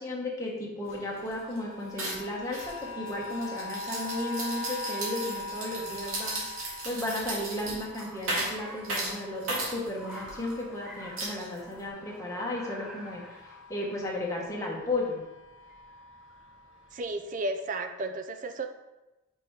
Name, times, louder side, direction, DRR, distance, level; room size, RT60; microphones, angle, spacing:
voice 1, 0.0-15.2, left 1 dB, 15° left, -3 dB, 1.4 m, -34 dB
sound 1, 0.9-11.9 12.3-16.9 17.6-17.7, left 2 dB, 65° left, 0.6 m, -43 dB
sound 2, 0.9-1.0 1.2-1.6 2.0-10.5 11.2-11.9, right 2 dB, 80° right, 2.2 m, -36 dB
Car, 4.6-17.2, equal, 5° right, 1.1 m, -51 dB
voice 2, 16.9-18.7, right 2 dB, 40° right, 7 dB, 0.5 m, -33 dB
5.5 x 5.3 x 5.0 m, 1.0 s
head